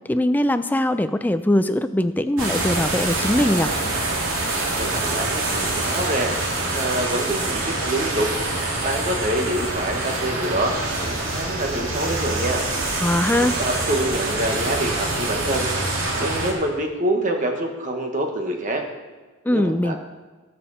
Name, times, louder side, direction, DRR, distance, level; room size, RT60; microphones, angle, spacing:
voice 1, 0.1-3.7 13.0-13.6 19.5-20.0, left 1 dB, 10° left, 11 dB, 0.3 m, -21 dB
sound 1, 2.4-16.5, right 2 dB, 65° right, 2.6 m, -25 dB
voice 2, 4.7-6.3 6.7-8.3 8.8-10.7 11.0-12.6 13.3-15.9 16.2-18.8 19.5-20.0, right 1 dB, 35° right, 3 dB, 1.4 m, -26 dB
18.5 x 7.0 x 4.2 m, 1.3 s
head